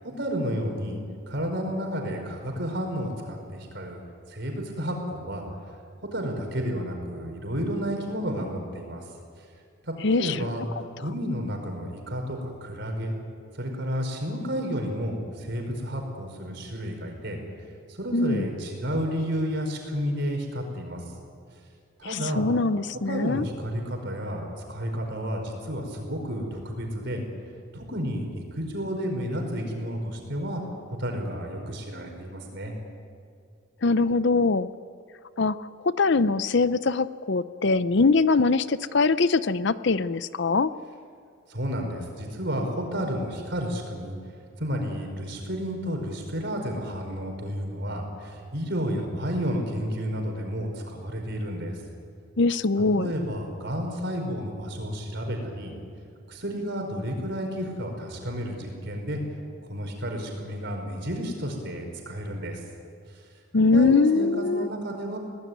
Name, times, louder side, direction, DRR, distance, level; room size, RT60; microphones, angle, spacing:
voice 1, 0.0-1.0 1.3-4.0 4.3-5.8 6.1-9.0 9.8-13.1 13.5-17.4 17.9-21.0 22.0-22.5 22.9-27.2 27.7-30.6 30.9-32.7 41.5-44.2 44.6-51.8 53.0-55.7 56.3-59.2 59.7-62.6 63.6-65.2, equal, 55° right, 3 dB, 5.1 m, -31 dB
voice 2, 10.0-10.4 18.1-18.5 22.1-23.4 33.8-34.7 35.4-40.7 52.4-53.1 63.5-64.7, left 3 dB, 55° left, 14 dB, 0.6 m, -22 dB
23.0 x 18.5 x 9.5 m, 2.4 s
head